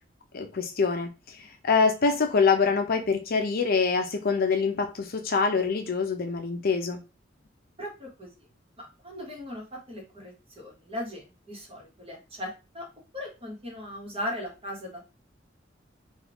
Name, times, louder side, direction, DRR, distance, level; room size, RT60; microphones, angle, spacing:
voice 1, 0.3-7.0, left 5 dB, 50° left, 0.5 m, -25 dB
voice 2, 7.8-8.3 8.8-12.8 13.1-15.1, left 1 dB, 30° right, 1.1 m, -38 dB
3.6 x 2.3 x 2.9 m
head